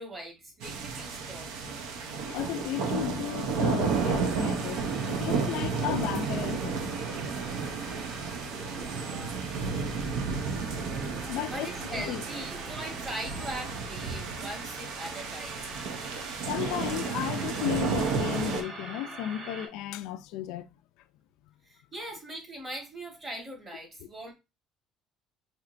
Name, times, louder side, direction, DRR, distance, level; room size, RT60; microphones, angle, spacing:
voice 1, 0.0-1.5 8.7-9.4 11.4-15.7 21.7-24.3, right 1 dB, 20° right, 1.3 m, -41 dB
sound 1, 0.6-18.6, right 5 dB, 85° right, 0.7 m, -32 dB
voice 2, 2.3-6.9 7.5-7.7 8.2-8.3 8.8-8.9 10.1-11.7 12.0-12.2 16.5-20.7, left 13 dB, 80° left, 0.3 m, -35 dB
sound 2, 3.8-19.7, right 2 dB, 45° right, 1.2 m, -44 dB
4.4 x 2.7 x 2.5 m
cardioid pair, 160°, 0 cm